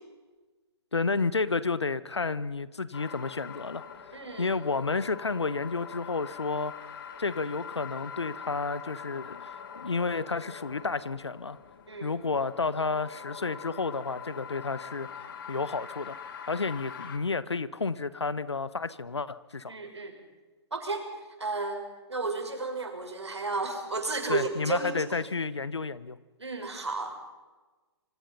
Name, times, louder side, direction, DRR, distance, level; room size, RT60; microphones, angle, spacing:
voice 1, 0.9-3.8 4.4-6.7 7.2-9.5 9.7-11.6 12.0-15.1 15.5-16.2 16.5-19.7 24.3-26.2, left 4 dB, 80° left, 17 dB, 1.2 m, -31 dB
sound 1, 2.9-17.2, left 7 dB, 55° left, 3.0 m, -44 dB
voice 2, 4.1-4.5 11.9-12.1 19.7-20.2 20.7-21.1 21.4-25.0 26.4-27.3, right 3 dB, 80° right, 4 dB, 6.3 m, -33 dB
26.5 x 25.0 x 5.6 m, 1.2 s
figure-of-eight pair, 120°, 14 cm